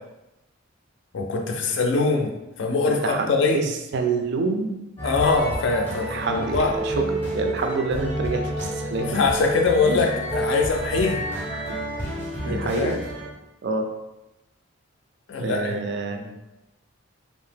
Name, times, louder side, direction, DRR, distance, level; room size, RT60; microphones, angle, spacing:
voice 1, 1.1-2.3 2.6-3.7 5.0-6.7 9.0-11.2 12.5-12.9 15.3-15.8 16.1-16.3, left 3 dB, 60° left, 2 dB, 0.4 m, -23 dB
voice 2, 3.5-4.8 6.0-9.2 11.5-11.8 12.4-13.0 13.6-13.9 15.4-16.2, right 3 dB, 55° right, 5 dB, 0.3 m, -27 dB
sound 1, 5.0-13.3, right 1 dB, 10° left, 0.6 m, -30 dB
2.7 x 2.0 x 3.3 m, 0.95 s
head